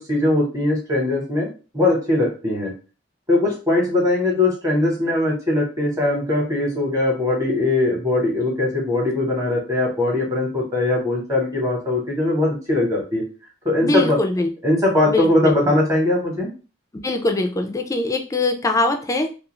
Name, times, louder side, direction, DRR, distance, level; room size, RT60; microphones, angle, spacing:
voice 1, 0.1-1.5 1.7-2.7 3.3-13.2 13.6-14.2 14.6-16.5, left 2 dB, 15° right, -2 dB, 0.9 m, -20 dB
voice 2, 13.8-14.5 15.1-15.5 17.0-19.3, left 2 dB, 15° left, 5 dB, 0.3 m, -22 dB
2.3 x 2.3 x 3.0 m, 0.33 s
head